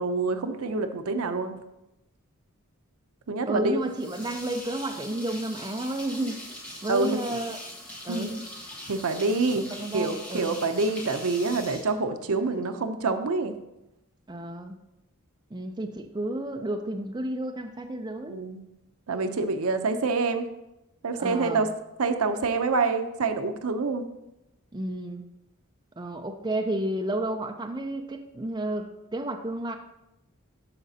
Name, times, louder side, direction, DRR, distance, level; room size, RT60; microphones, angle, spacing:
voice 1, 0.0-1.5 3.3-3.6 6.9-7.2 8.1-8.3 8.9-9.6 9.9-13.5 18.3-18.6 19.1-20.4 21.0-21.7 22.0-24.1, right 3 dB, 80° right, 8 dB, 0.6 m, -26 dB
voice 2, 3.5-6.4 6.8-7.6 8.0-8.4 9.7-10.6 14.3-14.8 15.5-18.4 21.2-21.7 24.7-25.2 26.0-29.8, right 1 dB, 20° right, 4 dB, 0.4 m, -31 dB
sound 1, 3.8-12.6, left 1 dB, 5° left, 1.2 m, -42 dB
12.5 x 4.9 x 2.8 m, 0.90 s
head